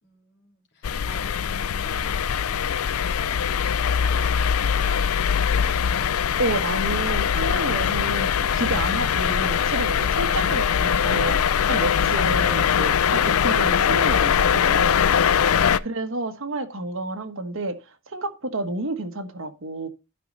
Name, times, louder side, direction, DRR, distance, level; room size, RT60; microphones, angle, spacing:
voice 1, 0.0-5.8, left 2 dB, 55° left, 2.9 m, -46 dB
sound 1, 0.8-15.8, left 7 dB, 75° left, 0.4 m, -22 dB
voice 2, 6.4-11.4 11.7-15.1 15.8-17.8 18.1-19.9, right 2 dB, 60° right, 1.4 m, -30 dB
11.5 x 5.4 x 3.9 m
head